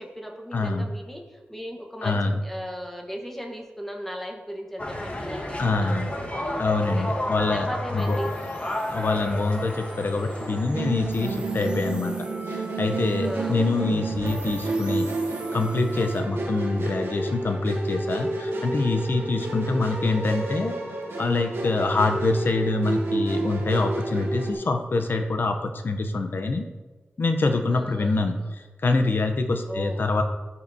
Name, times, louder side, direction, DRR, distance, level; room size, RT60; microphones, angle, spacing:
voice 1, 0.0-7.2 7.5-8.3 10.1-10.5 13.2-13.6 19.4-19.8 27.7-28.5 29.7-30.1, equal, 5° left, 1 dB, 1.2 m, -37 dB
voice 2, 0.5-0.9 2.0-2.4 5.6-6.1 6.6-8.2 8.9-15.1 15.5-20.8 21.2-26.7 27.2-30.2, left 3 dB, 55° left, 6 dB, 0.7 m, -25 dB
sound 1, 4.8-11.6, left 1 dB, 35° left, 1.1 m, -32 dB
sound 2, 7.9-16.2, right 2 dB, 20° right, 0.7 m, -40 dB
Musical instrument, 10.7-24.5, right 2 dB, 80° right, 1.3 m, -30 dB
13.0 x 5.6 x 2.7 m, 1.2 s
wide cardioid pair, 105°, 4 cm